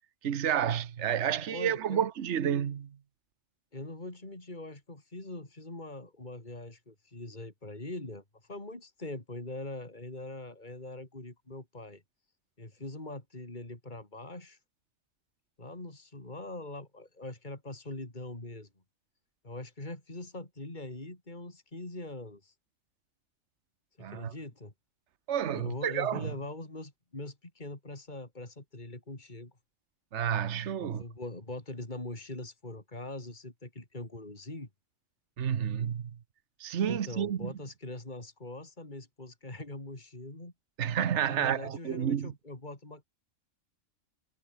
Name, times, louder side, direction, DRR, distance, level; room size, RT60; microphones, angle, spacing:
voice 1, 0.2-3.0 24.0-24.3 25.3-26.3 30.1-31.0 35.4-36.1 36.6-37.5 40.8-42.3, right 9 dB, 65° right, 1.3 m, -30 dB
voice 2, 1.5-2.1 3.7-12.0 12.6-14.6 15.6-18.7 19.4-22.5 24.0-24.7 25.5-29.6 30.8-34.7 36.8-40.5 41.3-43.0, left 2 dB, 40° left, 4.2 m, -42 dB
omnidirectional pair, 1.3 m